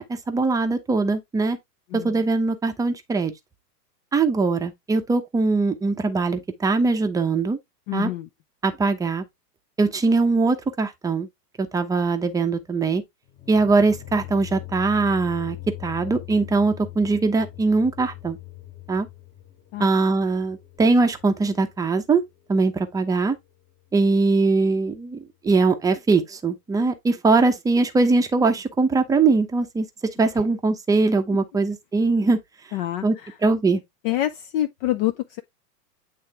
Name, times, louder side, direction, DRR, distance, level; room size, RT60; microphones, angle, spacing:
voice 1, 0.0-1.6 1.9-3.3 4.1-7.6 7.9-8.1 8.6-9.2 9.8-11.3 11.6-13.0 13.5-15.6 15.8-18.4 18.9-19.1 19.8-22.2 22.5-23.4 23.9-25.2 25.4-29.9 30.2-32.4 33.0-33.2 33.4-33.8, right 3 dB, 5° right, 0.7 m, -21 dB
voice 2, 7.9-8.3 19.7-19.9 32.7-33.4 34.0-35.4, left 14 dB, 35° left, 0.5 m, -27 dB
sound 1, 13.3-22.2, left 16 dB, 20° left, 1.0 m, -41 dB
8.7 x 3.3 x 3.3 m
hypercardioid pair, 115°, 48 cm